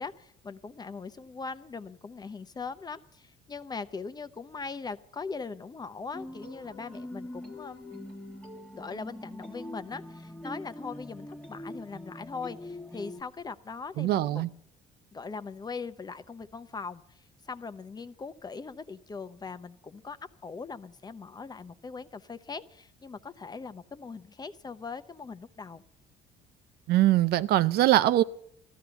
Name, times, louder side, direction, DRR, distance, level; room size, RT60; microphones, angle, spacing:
voice 1, 0.0-7.8 8.7-14.4 15.1-20.2 20.4-25.8, left 4 dB, 25° left, 0.7 m, -40 dB
sound 1, 6.1-13.2, left 1 dB, 5° left, 1.3 m, -43 dB
voice 2, 14.0-14.5 26.9-28.2, right 14 dB, 70° right, 0.6 m, -22 dB
14.0 x 12.5 x 7.0 m
cardioid pair, 110°, 17 cm